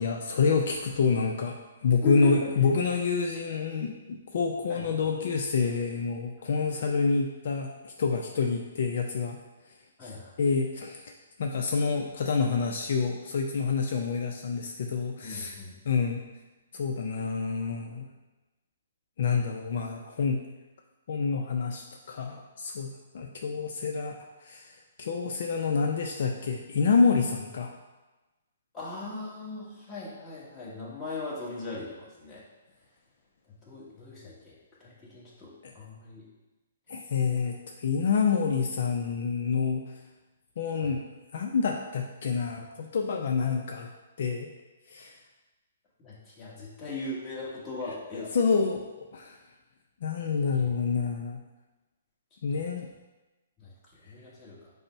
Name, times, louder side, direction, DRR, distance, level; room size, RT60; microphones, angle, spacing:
voice 1, 0.0-1.6 1.8-9.4 10.0-10.1 10.4-11.1 11.4-15.6 15.9-16.3 16.7-18.1 19.2-20.5 21.1-27.7 35.6-35.7 36.9-39.9 40.6-41.1 41.3-43.9 44.2-44.5 44.9-45.1 48.1-48.8 49.1-49.4 50.0-51.4 52.4-52.9, left 5 dB, 60° left, 2 dB, 0.4 m, -28 dB
voice 2, 2.0-2.7 4.7-4.8 10.0-10.3 15.2-15.8 28.7-32.4 33.6-34.5 34.8-36.3 40.8-40.9 46.0-48.3 50.6-50.7 52.5-52.6 53.6-54.7, left 3 dB, 20° left, -6 dB, 1.2 m, -39 dB
5.2 x 2.0 x 4.4 m, 1.1 s
hypercardioid pair, 150°, 0 cm